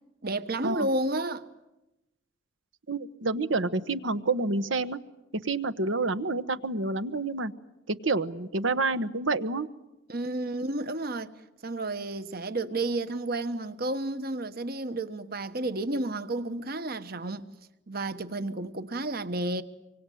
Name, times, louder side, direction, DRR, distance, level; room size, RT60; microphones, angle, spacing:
voice 1, 0.2-1.4 10.1-11.3 11.6-17.5 17.9-19.6, right 2 dB, 50° right, 1.3 m, -31 dB
voice 2, 2.9-5.0 5.3-7.5 7.9-9.7, right 3 dB, 75° right, 1.2 m, -28 dB
26.0 x 24.5 x 9.4 m
head